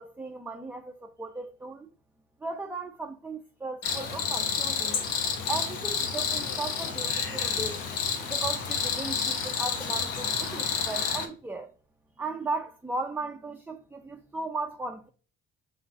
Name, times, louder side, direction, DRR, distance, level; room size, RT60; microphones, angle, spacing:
voice 1, 0.0-1.9 2.4-5.0 5.5-7.8 8.2-11.7 12.2-15.1, right 3 dB, 5° right, 0.5 m, -36 dB
Cricket, 3.8-11.3, left 6 dB, 75° left, 0.9 m, -29 dB
3.8 x 3.1 x 3.6 m
supercardioid pair, 60°, 34 cm